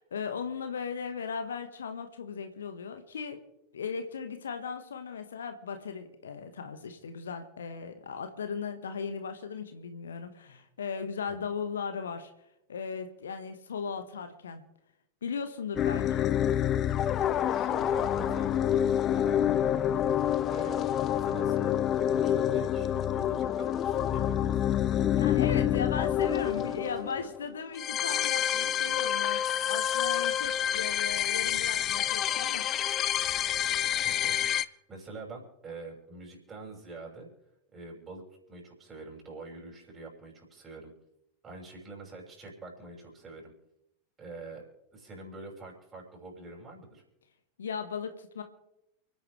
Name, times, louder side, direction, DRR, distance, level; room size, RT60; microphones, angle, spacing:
voice 1, 0.0-3.4 3.7-12.3 12.7-14.6 15.2-16.3 25.1-33.0 47.6-48.4, left 6 dB, 65° left, 8 dB, 1.5 m, -37 dB
sound 1, 15.8-34.6, left 10 dB, 30° left, 0.5 m, -28 dB
voice 2, 17.3-18.7 19.1-20.1 20.5-20.8 21.2-24.6 26.4-27.3 33.8-37.3 37.7-40.9 41.4-43.5 44.2-44.6 44.9-47.0, right 3 dB, 20° right, -1 dB, 6.1 m, -46 dB
30.0 x 10.0 x 3.3 m, 0.86 s
figure-of-eight pair, 90°, 0 cm